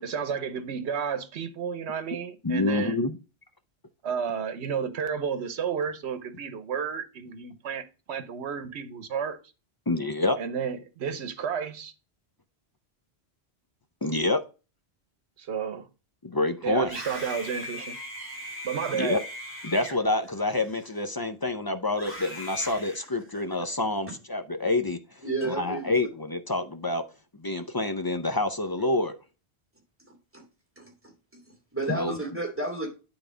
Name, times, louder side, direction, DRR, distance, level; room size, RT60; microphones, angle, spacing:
voice 1, 0.0-3.1 4.0-9.4 10.4-11.9 15.4-15.9 16.6-18.0 18.6-19.2, right 7 dB, 80° right, 1.1 m, -32 dB
voice 2, 2.4-3.1 9.9-10.4 14.0-14.4 16.2-16.9 18.9-19.2 19.6-25.0 25.5-27.0 27.4-29.2 31.9-32.2, left 2 dB, 30° left, 0.4 m, -27 dB
Screaming, 16.8-21.3 21.9-23.7, left 1 dB, 10° left, 3.0 m, -40 dB
voice 3, 25.2-25.9 30.1-30.4 30.8-32.9, right 2 dB, 10° right, 2.3 m, -33 dB
9.1 x 3.9 x 4.9 m
omnidirectional pair, 1.1 m